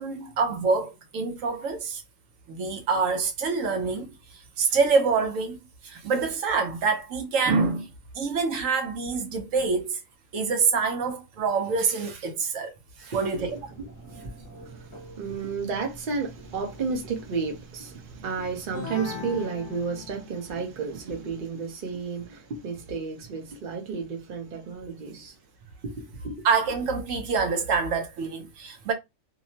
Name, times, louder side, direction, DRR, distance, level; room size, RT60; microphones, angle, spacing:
voice 1, 0.0-2.0 2.5-5.6 5.8-10.0 10.3-13.6 26.4-28.9, right 4 dB, 80° right, 1.0 m, -26 dB
voice 2, 13.1-13.5 13.8-13.9 14.8-25.3 25.8-26.4, right 5 dB, 45° right, 0.8 m, -32 dB
Telephone, 13.3-19.5, right 3 dB, 25° left, 0.9 m, -48 dB
sound 1, 18.7-20.6, left 6 dB, 70° left, 0.9 m, -38 dB
2.8 x 2.0 x 2.7 m
omnidirectional pair, 1.3 m